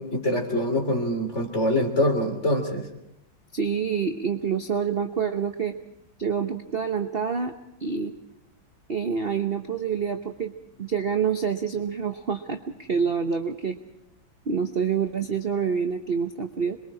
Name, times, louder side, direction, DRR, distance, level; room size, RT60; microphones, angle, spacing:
voice 1, 0.0-2.9, left 1 dB, 35° left, 4 dB, 3.4 m, -24 dB
voice 2, 3.5-5.7 6.2-7.5 7.8-8.1 8.9-10.5 10.8-13.8 14.5-16.8, right 6 dB, 40° right, 6 dB, 0.9 m, -27 dB
27.0 x 21.5 x 4.8 m, 0.85 s
omnidirectional pair, 2.1 m